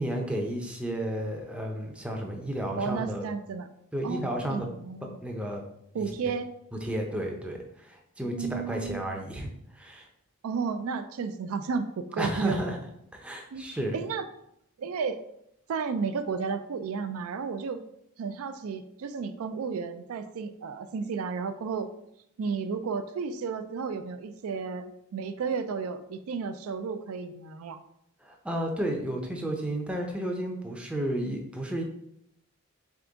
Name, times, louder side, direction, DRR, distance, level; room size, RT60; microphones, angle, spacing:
voice 1, 0.0-3.3 3.9-4.7 5.2-5.6 5.9-6.3 6.8-10.1 12.2-12.8 13.1-14.0 28.2-31.8, right 1 dB, 5° right, 1 dB, 0.5 m, -32 dB
voice 2, 2.7-3.7 4.0-5.2 5.9-6.5 8.2-9.1 10.4-12.6 13.5-13.6 13.9-14.3 14.8-15.2 15.7-17.8 18.2-21.9 22.4-27.8, right 5 dB, 70° right, 9 dB, 0.3 m, -33 dB
3.6 x 3.4 x 3.8 m, 0.76 s
head